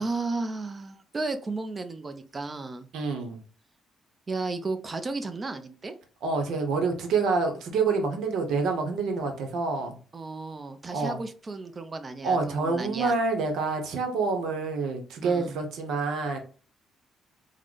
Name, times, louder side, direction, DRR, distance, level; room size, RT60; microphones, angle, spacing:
voice 1, 0.0-2.9 4.3-5.9 10.1-13.1 15.2-15.5, right 3 dB, 30° right, 9 dB, 0.5 m, -33 dB
voice 2, 2.9-3.4 6.2-10.0 10.9-11.2 12.2-16.4, right 4 dB, 80° right, 4 dB, 0.8 m, -27 dB
3.8 x 2.1 x 3.1 m, 0.39 s
cardioid pair, 90°, 0 cm